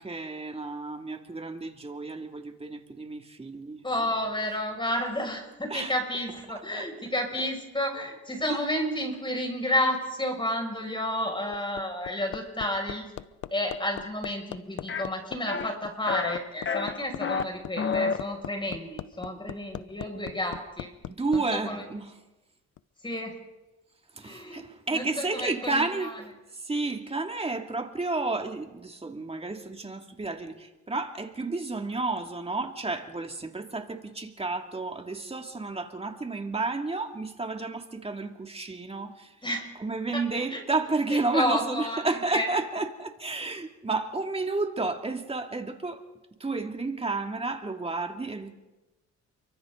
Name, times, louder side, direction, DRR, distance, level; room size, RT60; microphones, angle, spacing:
voice 1, 0.0-3.8 5.7-5.9 6.7-6.9 8.5-8.6 20.2-20.4 21.1-22.2 24.1-26.1 26.5-39.3 39.8-46.0 46.4-48.5, right 3 dB, 20° right, 2.5 m, -31 dB
voice 2, 3.8-13.1 13.5-20.9 21.3-21.8 23.0-23.4 24.2-24.7 24.9-26.1 39.4-39.7 40.1-40.2 40.5-40.6 41.1-42.5, left 1 dB, 15° left, 6.5 m, -31 dB
Hammer, 11.3-21.4 22.8-22.9, left 12 dB, 75° left, 0.8 m, -39 dB
sound 1, 14.9-15.0 15.5-15.7 16.1-16.4 16.7-17.4 17.8-18.2, left 5 dB, 40° left, 1.5 m, -29 dB
29.0 x 24.0 x 4.0 m
cardioid pair, 90°, 30 cm